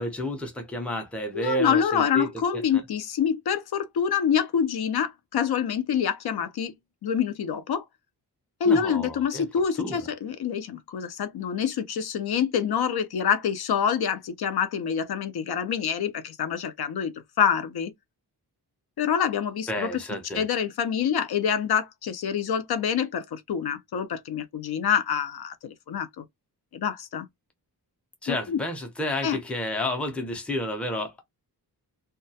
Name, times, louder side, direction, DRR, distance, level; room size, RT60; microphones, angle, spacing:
voice 1, 0.0-2.6 8.7-9.4 9.8-10.0 19.7-20.4 28.2-31.2, equal, 5° left, 0.5 m, -31 dB
voice 2, 1.3-6.7 7.0-7.8 8.6-17.9 19.0-20.0 20.3-26.2 26.7-27.3 28.3-28.6 29.2-29.4, left 7 dB, 65° left, 0.5 m, -26 dB
2.3 x 2.1 x 2.6 m
wide cardioid pair, 170°, 41 cm